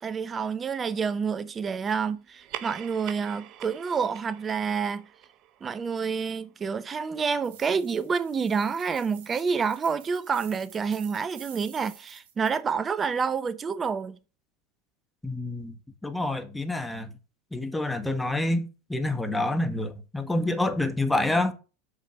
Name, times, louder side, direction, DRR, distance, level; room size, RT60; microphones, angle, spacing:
voice 1, 0.0-5.0 5.6-14.2, right 6 dB, 25° right, 0.6 m, -28 dB
sound 1, 2.3-7.1, right 11 dB, 50° right, 0.9 m, -45 dB
sound 2, 7.4-12.6, right 9 dB, 65° right, 2.9 m, -50 dB
voice 2, 15.2-15.7 16.0-17.1 17.5-21.5, left 2 dB, 5° left, 1.4 m, -27 dB
8.2 x 5.1 x 5.6 m
hypercardioid pair, 100°, 0 cm